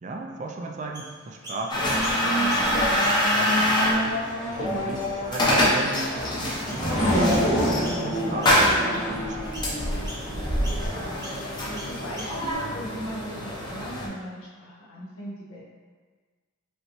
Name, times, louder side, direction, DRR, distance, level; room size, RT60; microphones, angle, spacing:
voice 1, 0.0-4.0 4.6-7.6 7.8-9.9, right 3 dB, 35° right, 2 dB, 0.4 m, -36 dB
Chirp tweet, 0.9-1.6 2.0-2.7 2.9-4.1 4.7-4.8 5.5-5.6 5.9-6.2 6.7-6.9 7.3-7.5 7.8-8.2 8.4-9.1 9.5-9.7 10.0-10.2 10.6-10.8 11.2-11.4 11.7-12.5, equal, 20° right, 1.0 m, -39 dB
sound 1, 1.7-14.1, equal, 20° left, 0.7 m, -26 dB
Race car auto racing / Accelerating revving vroom, 1.8-10.9, equal, 35° left, 1.4 m, -27 dB
voice 2, 10.5-15.6, equal, 75° left, -6 dB, 1.2 m, -39 dB
5.1 x 3.0 x 3.0 m, 1.5 s
head